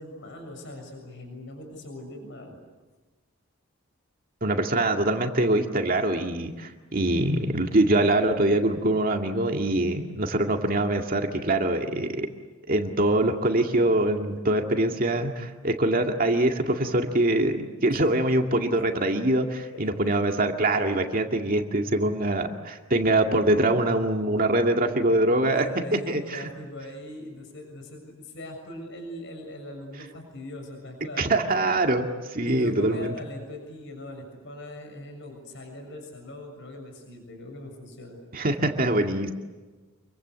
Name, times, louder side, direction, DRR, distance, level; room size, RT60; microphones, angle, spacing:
voice 1, 0.0-2.6 17.9-18.0 19.7-20.2 25.4-31.6 32.4-38.5, left 1 dB, 60° left, 4 dB, 6.8 m, -41 dB
voice 2, 4.4-12.3 12.7-25.7 25.9-26.5 31.2-33.2 38.3-39.3, right 1 dB, 40° right, 3 dB, 2.2 m, -24 dB
28.5 x 24.0 x 8.2 m, 1.3 s
head